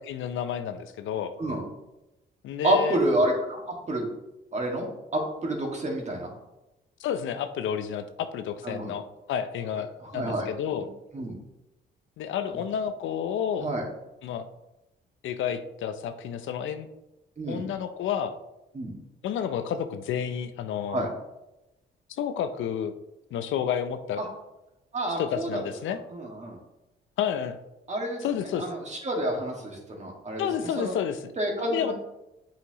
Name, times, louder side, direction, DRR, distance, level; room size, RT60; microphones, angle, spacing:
voice 1, 0.1-1.3 2.4-3.0 7.0-9.9 10.1-10.9 12.2-13.7 14.2-14.5 15.2-16.9 17.5-18.3 19.2-21.1 22.2-23.0 23.3-24.2 25.2-26.0 27.2-27.6 28.2-28.7 30.4-31.3 31.6-31.9, left 8 dB, 75° left, 9 dB, 0.6 m, -30 dB
voice 2, 2.6-4.1 4.5-4.9 5.1-6.3 8.6-8.9 10.0-10.5 11.1-11.4 13.6-13.8 17.4-17.6 18.7-18.9 20.9-21.1 24.2-24.3 24.9-25.6 26.1-26.6 27.9-30.9 31.4-31.9, right 1 dB, 35° right, 0 dB, 2.0 m, -29 dB
8.4 x 5.8 x 3.0 m, 0.97 s
cardioid pair, 90°, 20 cm